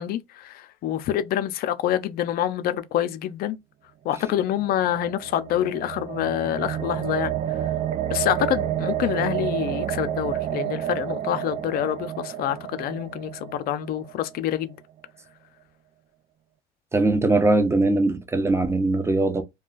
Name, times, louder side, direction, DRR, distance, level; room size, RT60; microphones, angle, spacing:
voice 1, 0.0-3.6 4.0-7.3 8.1-14.8, left 11 dB, 60° left, 0.6 m, -26 dB
sound 1, 4.4-14.6, right 11 dB, 45° right, 0.4 m, -30 dB
voice 2, 16.9-19.4, right 2 dB, 15° right, 0.8 m, -21 dB
2.3 x 2.3 x 3.8 m
supercardioid pair, 95°, 17 cm